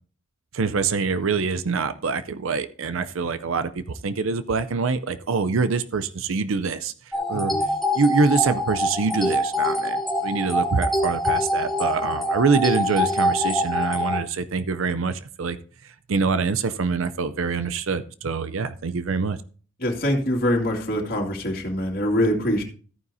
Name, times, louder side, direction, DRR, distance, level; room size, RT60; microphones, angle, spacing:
voice 1, 0.5-6.9 7.3-7.5 8.0-15.6 16.1-19.4, right 4 dB, 80° right, 11 dB, 0.6 m, -25 dB
sound 1, 7.1-14.2, left 1 dB, ahead, 1.3 m, -24 dB
voice 2, 7.3-7.7 19.8-22.6, equal, 45° left, 0 dB, 2.3 m, -24 dB
14.0 x 9.5 x 2.7 m, 0.41 s
head